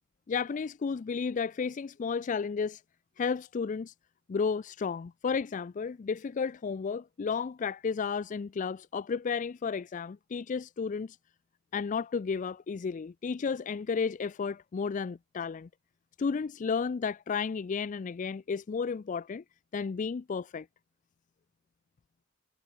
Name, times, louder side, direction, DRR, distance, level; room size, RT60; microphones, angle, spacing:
voice 1, 0.3-2.8 3.2-3.9 4.3-11.2 11.7-15.7 16.2-19.4 19.7-20.7, left 5 dB, 40° left, 0.4 m, -32 dB
head